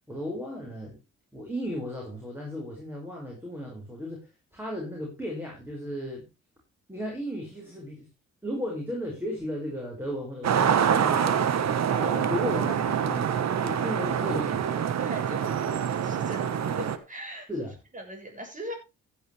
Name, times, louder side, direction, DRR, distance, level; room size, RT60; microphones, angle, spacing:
voice 1, 0.1-1.0 1.3-4.3 4.5-6.3 6.9-8.1 8.4-11.5 11.9-13.3 13.6-14.8 17.5-17.7, left 1 dB, 5° right, -2 dB, 5.9 m, -35 dB
sound 1, 10.4-17.0, right 8 dB, 60° right, 1.5 m, -26 dB
voice 2, 15.0-15.6 16.0-18.7, equal, 25° right, 3 dB, 7.0 m, -40 dB
15.0 x 10.0 x 3.4 m, 0.26 s
cardioid pair, 90°, 30 cm